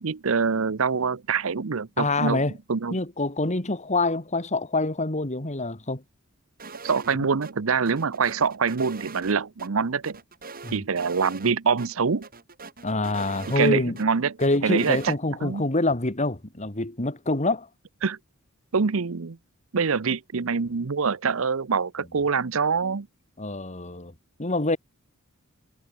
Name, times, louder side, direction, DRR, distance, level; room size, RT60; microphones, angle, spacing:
voice 1, 0.0-2.4 2.7-2.9 6.8-10.2 10.7-12.3 13.6-14.3 14.6-15.1 15.4-15.6 18.0-18.2 18.7-19.4 19.7-23.1, right 5 dB, 70° right, 0.7 m, -25 dB
voice 2, 2.0-2.6 2.9-6.0 7.2-7.3 10.6-10.8 12.8-14.0 14.4-17.7 23.4-24.1 24.4-24.8, left 2 dB, 35° left, 2.2 m, -26 dB
sound 1, 6.6-7.2 7.4-7.5 7.9-9.7 10.0-11.5 11.8-11.9 12.2-14.1 14.4-15.2, right 4 dB, 45° right, 4.9 m, -42 dB
head